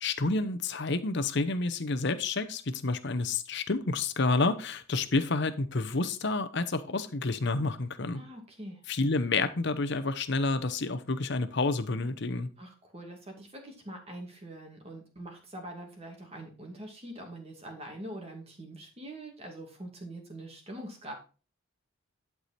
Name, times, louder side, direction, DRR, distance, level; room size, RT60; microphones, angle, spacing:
voice 1, 0.0-8.2 8.9-12.5, left 3 dB, 55° left, 10 dB, 0.8 m, -29 dB
voice 2, 8.1-8.8 12.6-21.1, right 1 dB, 30° right, 2 dB, 2.2 m, -44 dB
11.5 x 4.8 x 4.3 m, 0.36 s
head